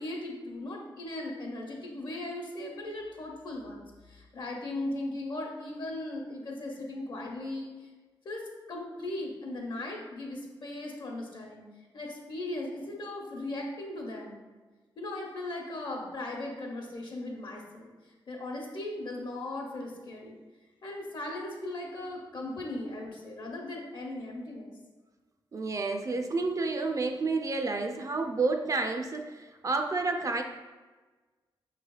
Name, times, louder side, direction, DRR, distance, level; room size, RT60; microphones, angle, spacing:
voice 1, 0.0-7.9 8.2-11.6 11.9-14.4 15.0-17.9 18.3-20.3 20.8-24.7, left 2 dB, 55° left, 0 dB, 1.0 m, -38 dB
voice 2, 25.5-30.4, right 3 dB, 40° right, 5 dB, 0.4 m, -30 dB
5.4 x 3.2 x 2.3 m, 1.3 s
cardioid pair, 70°, 9 cm